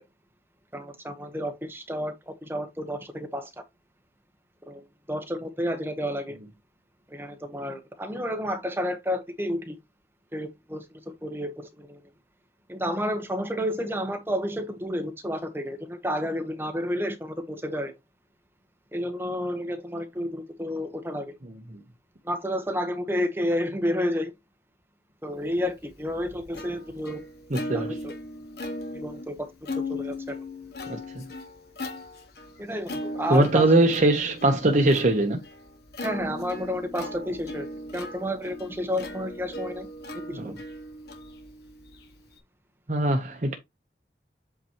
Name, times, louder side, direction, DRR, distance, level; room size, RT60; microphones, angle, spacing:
voice 1, 0.7-3.5 4.7-4.8 5.1-6.4 7.1-9.8 10.3-12.0 12.7-17.9 18.9-21.3 22.2-24.3 25.2-27.2 27.7-28.1 28.9-30.4 32.6-33.7 36.0-37.7 37.9-39.9 40.1-40.5, equal, 15° right, 1.0 m, -31 dB
Plucked string instrument, 25.6-42.4, left 2 dB, 65° left, 1.5 m, -38 dB
voice 2, 27.5-28.0 30.9-31.2 33.3-35.4 40.3-40.6 42.9-43.5, right 2 dB, 45° right, 0.8 m, -22 dB
8.1 x 4.4 x 2.9 m
head